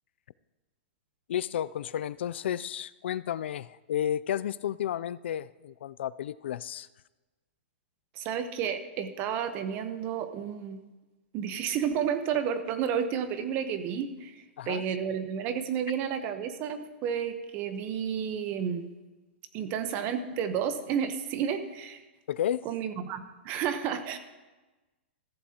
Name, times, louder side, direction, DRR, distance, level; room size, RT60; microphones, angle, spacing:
voice 1, 1.3-6.9 14.6-14.8 22.3-22.6, left 10 dB, 70° left, 17 dB, 0.4 m, -32 dB
voice 2, 8.2-10.8 11.3-18.9 19.5-22.0 22.6-24.2, right 8 dB, 30° right, 10 dB, 0.9 m, -31 dB
14.5 x 14.0 x 2.9 m, 1.2 s
hypercardioid pair, 160°, 6 cm